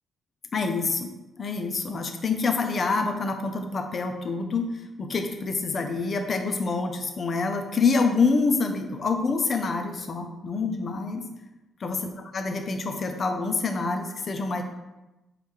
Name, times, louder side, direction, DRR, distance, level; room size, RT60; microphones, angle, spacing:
voice 1, 0.5-1.1 1.4-11.2 11.8-14.6, left 4 dB, 40° left, 6 dB, 0.5 m, -26 dB
4.7 x 3.2 x 3.5 m, 1.0 s
cardioid pair, 115°, 0 cm